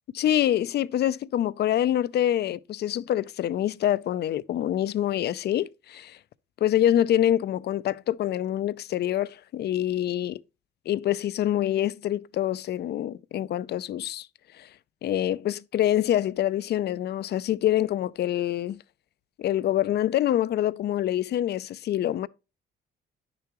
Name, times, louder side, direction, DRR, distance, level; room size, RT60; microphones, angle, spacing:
voice 1, 0.1-6.2 6.6-10.4 10.9-14.3 14.6-14.7 15.0-18.8 19.4-22.3, left 12 dB, 55° left, 0.4 m, -26 dB
9.6 x 6.8 x 3.0 m
cardioid pair, 90°, 20 cm